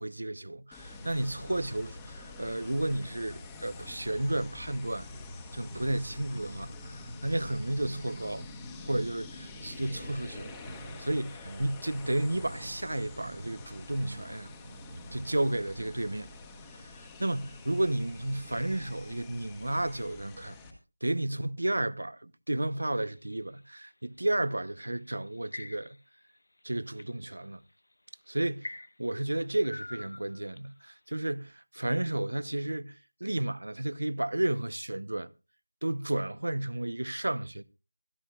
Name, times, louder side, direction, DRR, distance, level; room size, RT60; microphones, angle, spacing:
voice 1, 0.0-5.1 5.5-8.5 8.8-10.5 11.0-14.5 15.1-16.3 16.8-20.5 21.0-26.0 26.6-27.6 28.3-28.7 29.0-35.3 35.8-37.6, right 1 dB, 75° right, 0.9 m, -32 dB
sound 1, 0.7-20.7, left 2 dB, 10° left, 1.5 m, -46 dB
sound 2, 5.7-6.0 6.3-8.6 8.9-11.1 11.5-13.7 14.0-15.9, right 2 dB, 45° right, 1.3 m, -47 dB
sound 3, 22.7-23.9 24.9-26.2 26.6-27.1 27.8-27.9 28.6-30.8, left 2 dB, 70° left, 0.7 m, -45 dB
25.0 x 10.5 x 2.4 m
figure-of-eight pair, 175°, 0 cm